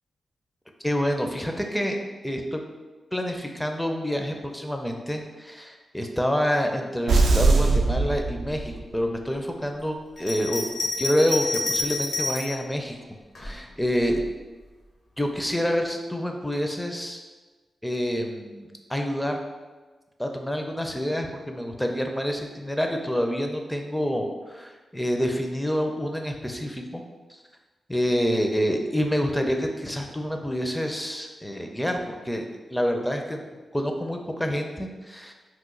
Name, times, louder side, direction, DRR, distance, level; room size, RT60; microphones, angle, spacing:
voice 1, 0.8-2.0 2.2-2.6 3.1-10.6 11.0-13.0 13.4-14.2 15.2-17.2 17.8-19.4 20.2-27.0 27.3-27.4 27.9-32.4 32.7-33.4 33.7-35.3, equal, 5° left, 3 dB, 0.4 m, -27 dB
sound 1, 7.1-9.0, right 3 dB, 80° right, 0.3 m, -21 dB
Bell, 10.2-12.6 13.3-14.3, left 2 dB, 55° left, 0.8 m, -29 dB
2.9 x 2.1 x 3.7 m, 1.3 s
cardioid pair, 60°, 0 cm